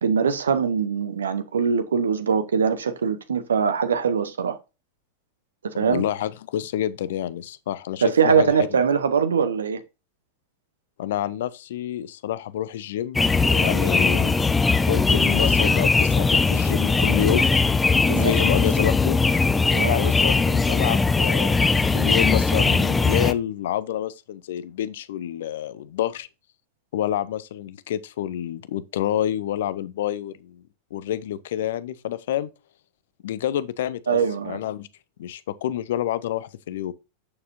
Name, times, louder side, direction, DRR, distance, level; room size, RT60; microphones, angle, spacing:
voice 1, 0.0-4.6 5.8-6.0 8.0-9.8 18.1-18.3 19.7-20.0 34.1-34.6, right 6 dB, 70° right, 0.9 m, -22 dB
voice 2, 5.8-8.7 11.0-17.5 18.1-19.2 19.9-26.3 26.9-30.6 30.9-32.5 33.2-34.9 35.2-36.9, left 11 dB, 55° left, 0.6 m, -28 dB
sound 1, 13.1-23.3, left 4 dB, 10° left, 0.5 m, -20 dB
8.6 x 6.8 x 2.6 m
figure-of-eight pair, 90°, 0 cm